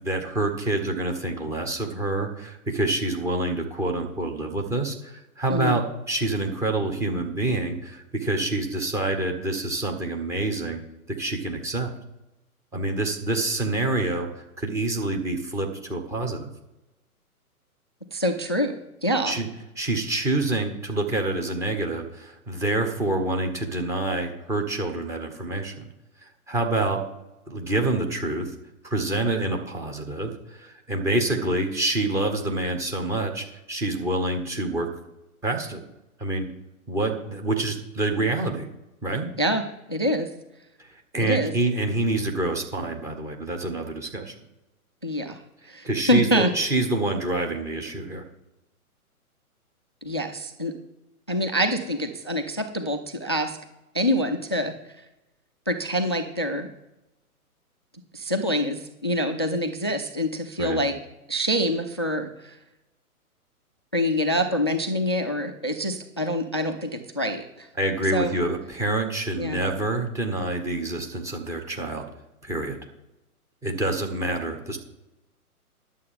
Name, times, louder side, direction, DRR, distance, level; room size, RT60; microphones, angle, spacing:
voice 1, 0.0-10.8 11.1-11.9 12.7-16.5 19.2-19.5 19.8-25.9 26.5-27.0 27.5-28.5 28.8-34.9 35.4-35.8 36.2-36.5 36.9-38.7 39.0-39.3 41.1-44.3 45.8-48.2 60.6-60.8 67.8-72.1 72.4-72.8 73.6-74.8, right 2 dB, 5° right, 2 dB, 0.9 m, -27 dB
voice 2, 5.5-5.8 18.1-18.7 19.0-19.4 39.4-39.6 39.9-40.3 41.2-41.5 45.0-45.4 45.6-46.5 50.0-50.7 51.3-53.6 53.9-54.7 55.7-56.7 58.1-60.9 61.3-62.6 63.9-67.7 68.1-68.3 69.4-69.6, equal, 20° left, 6 dB, 0.4 m, -25 dB
11.0 x 7.5 x 5.6 m, 0.96 s
figure-of-eight pair, 125°, 44 cm